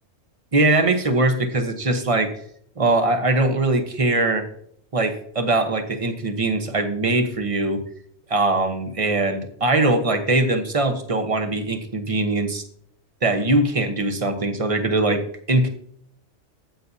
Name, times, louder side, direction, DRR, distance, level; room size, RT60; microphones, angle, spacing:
voice 1, 0.5-2.3 2.8-4.5 4.9-7.8 8.3-12.6 13.2-15.7, right 2 dB, 30° right, 8 dB, 1.0 m, -21 dB
13.0 x 8.4 x 2.7 m, 0.66 s
omnidirectional pair, 1.2 m